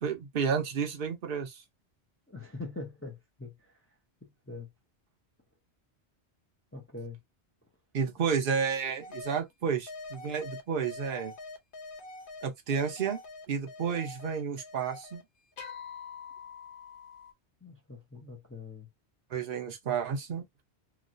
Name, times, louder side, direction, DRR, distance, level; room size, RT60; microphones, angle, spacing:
voice 1, 0.0-1.6 7.9-11.3 12.4-13.2 13.5-15.2 19.3-20.4, right 6 dB, 60° right, 0.9 m, -31 dB
voice 2, 2.3-3.5 4.5-4.7 6.7-7.2 17.6-18.9, left 3 dB, 15° left, 0.6 m, -42 dB
sound 1, 9.0-9.4 9.9-15.2 15.6-17.3, left 3 dB, 55° left, 0.8 m, -45 dB
3.0 x 2.3 x 2.5 m
omnidirectional pair, 1.1 m